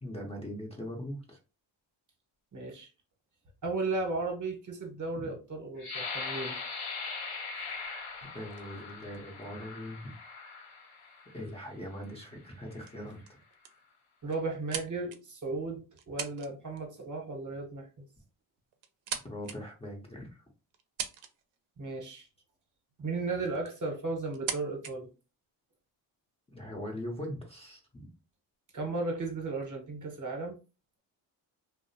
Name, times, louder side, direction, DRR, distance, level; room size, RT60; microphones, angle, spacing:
voice 1, 0.0-1.4 5.2-5.3 8.3-10.1 11.3-13.4 19.2-20.4 26.5-28.1, equal, 10° left, -1 dB, 0.7 m, -41 dB
voice 2, 2.5-2.9 3.6-6.5 14.2-17.9 21.8-22.3 23.0-25.1 28.7-30.6, right 3 dB, 35° right, 3 dB, 0.9 m, -35 dB
sound 1, 5.8-11.4 12.1-12.3 12.7-13.2, left 4 dB, 50° left, 1.0 m, -40 dB
sound 2, 7.5-10.1 11.0-11.1 11.4-11.7 12.3-12.6 12.9-13.0 13.3-13.8 14.3-15.4 16.0-16.5 16.8-17.0 18.1-18.2 18.7-19.6 20.1-20.2 20.7-21.6 22.9-23.0 23.4-23.8 24.3-24.9, right 8 dB, 70° right, 0.6 m, -41 dB
2.5 x 2.0 x 2.6 m, 0.31 s
cardioid pair, 80°, 50 cm